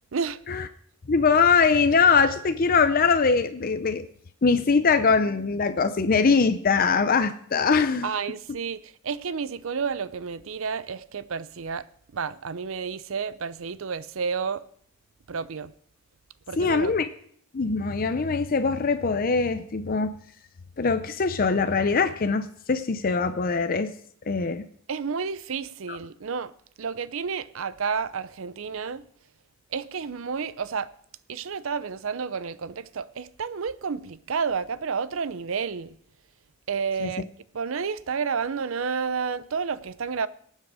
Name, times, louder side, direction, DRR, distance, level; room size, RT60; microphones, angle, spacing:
voice 1, 1.1-4.1 4.4-8.1 16.6-17.1 17.5-20.2 20.8-23.9 24.3-24.7 25.9-26.0 37.0-37.1, left 5 dB, 40° left, 0.5 m, -22 dB
voice 2, 8.0-11.9 12.1-14.6 15.3-15.7 16.5-16.9 24.9-26.5 26.8-29.0 29.7-30.9 31.3-36.0 36.7-37.2 37.5-40.3, right 5 dB, 65° right, 0.6 m, -30 dB
18.5 x 7.5 x 4.8 m
head